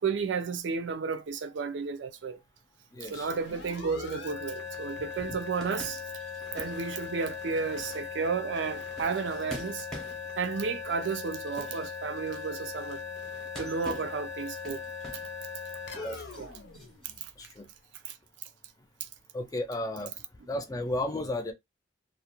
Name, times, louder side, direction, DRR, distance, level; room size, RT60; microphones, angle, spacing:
voice 1, 0.0-2.4 3.0-6.0 6.5-9.9 10.4-13.0 13.6-14.8 16.4-16.5 17.2-17.3 18.0-18.2 19.0-19.1, right 5 dB, 70° right, 0.4 m, -32 dB
voice 2, 2.9-3.3 16.0-16.5 17.4-17.7 19.3-20.1 20.5-21.5, left 1 dB, 20° left, 0.3 m, -34 dB
sound 1, 3.0-17.6, left 5 dB, 65° left, 0.6 m, -40 dB
sound 2, 5.6-12.6 13.4-15.4 15.6-17.2, equal, ahead, 0.7 m, -46 dB
2.4 x 2.1 x 2.8 m
head